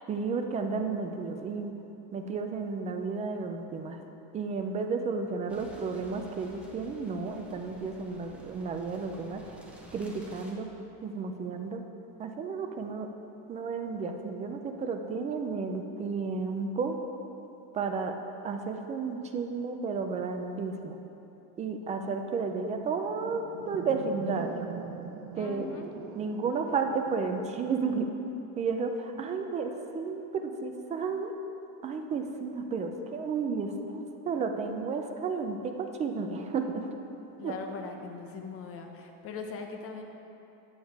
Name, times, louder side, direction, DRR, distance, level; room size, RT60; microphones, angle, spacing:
voice 1, 0.1-1.7 2.1-4.0 4.3-9.6 9.9-10.7 11.0-11.8 12.2-13.1 13.5-17.0 17.7-18.2 18.4-21.0 21.6-24.5 25.3-25.7 26.1-28.1 28.6-31.3 31.8-36.9 37.4-37.5, right 4 dB, 20° right, 5 dB, 0.3 m, -32 dB
sound 1, 5.5-10.5, left 1 dB, 5° right, 0.8 m, -52 dB
sound 2, 22.5-28.0, right 7 dB, 65° right, 0.9 m, -43 dB
voice 2, 25.3-25.9 37.4-40.0, left 4 dB, 35° left, 3 dB, 0.9 m, -40 dB
8.6 x 8.0 x 4.6 m, 3.0 s
cardioid pair, 150°, 41 cm